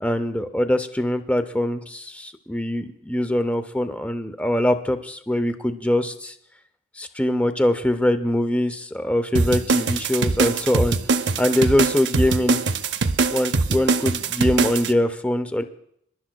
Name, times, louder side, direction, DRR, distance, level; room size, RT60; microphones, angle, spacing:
voice 1, 0.0-6.4 7.0-11.0 11.4-12.6 13.3-15.6, left 1 dB, 5° left, 10 dB, 0.5 m, -23 dB
sound 1, 9.4-14.9, right 4 dB, 55° right, 0.6 m, -22 dB
26.0 x 11.5 x 2.2 m, 0.72 s
head